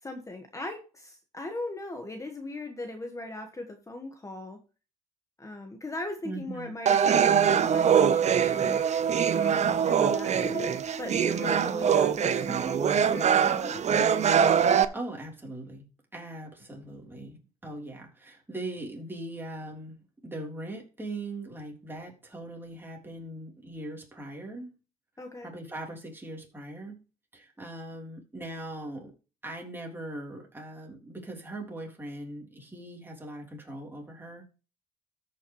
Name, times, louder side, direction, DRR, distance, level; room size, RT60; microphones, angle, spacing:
voice 1, 0.0-4.6 5.4-8.8 9.4-13.9 25.2-25.5, left 2 dB, 20° left, 5 dB, 1.4 m, -39 dB
voice 2, 6.2-6.7 14.6-20.0 20.2-24.7 25.4-27.0 27.3-29.1 29.4-34.4, right 1 dB, 15° right, 0 dB, 3.4 m, -40 dB
sound 1, 6.9-14.8, right 7 dB, 45° right, 0.8 m, -23 dB
13.5 x 5.9 x 3.1 m, 0.32 s
cardioid pair, 90°, 16 cm